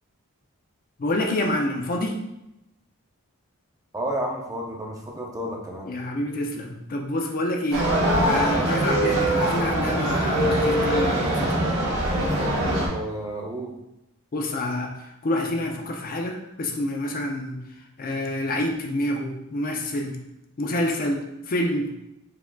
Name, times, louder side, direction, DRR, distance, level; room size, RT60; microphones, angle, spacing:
voice 1, 1.0-2.2 5.8-11.6 14.3-17.6 18.0-20.2 20.6-21.9, left 1 dB, 40° left, 2 dB, 0.5 m, -27 dB
voice 2, 3.9-5.9 12.9-13.7, right 1 dB, 15° right, -1 dB, 0.5 m, -31 dB
sound 1, 7.7-12.9, right 1 dB, 65° right, 1.2 m, -22 dB
4.7 x 3.5 x 2.2 m, 0.89 s
head